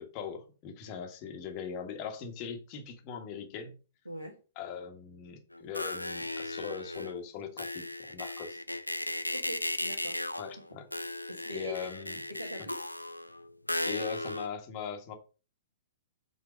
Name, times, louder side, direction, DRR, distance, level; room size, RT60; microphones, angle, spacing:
voice 1, 0.0-3.8 4.5-8.6 10.4-11.2 11.5-12.2 12.6-12.7 13.9-15.1, left 7 dB, 35° left, 1.6 m, -40 dB
voice 2, 4.1-4.4 9.3-10.2 10.6-10.7 11.3-11.8 12.3-12.8, equal, 85° right, 1.8 m, -41 dB
sound 1, 5.5-7.2 7.6-14.5, left 1 dB, 85° left, 0.5 m, -36 dB
7.1 x 4.4 x 5.2 m
figure-of-eight pair, 110°, 0 cm